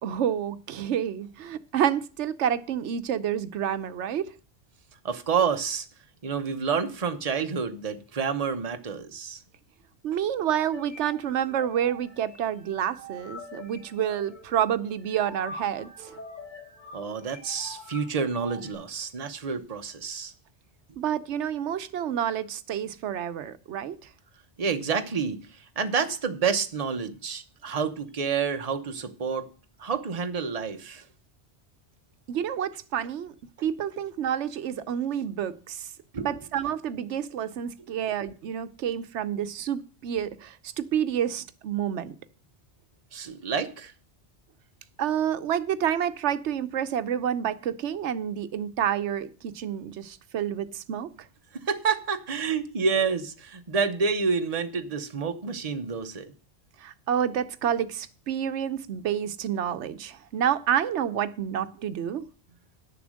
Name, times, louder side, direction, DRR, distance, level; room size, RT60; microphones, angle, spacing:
voice 1, 0.0-4.3 10.0-16.2 21.0-24.0 32.3-33.3 33.6-35.9 36.2-42.2 45.0-51.1 56.8-62.3, right 9 dB, 85° right, 1.0 m, -29 dB
voice 2, 5.0-5.9 6.2-9.4 16.9-20.3 24.6-29.5 29.8-31.0 36.1-36.3 43.1-43.9 51.5-56.3, right 5 dB, 35° right, 1.0 m, -29 dB
sound 1, 10.7-18.7, equal, 45° left, 5.1 m, -45 dB
10.0 x 6.9 x 6.3 m
omnidirectional pair, 1.1 m